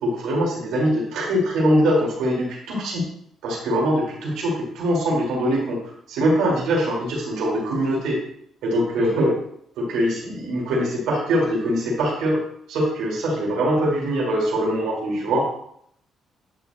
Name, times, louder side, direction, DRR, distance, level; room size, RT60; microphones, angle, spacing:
voice 1, 0.0-3.0 3.4-5.8 6.1-8.2 8.6-9.4 9.8-12.4 12.7-15.5, equal, 85° right, -3 dB, 3.3 m, -22 dB
10.5 x 6.3 x 2.6 m, 0.67 s
cardioid pair, 95°, 0 cm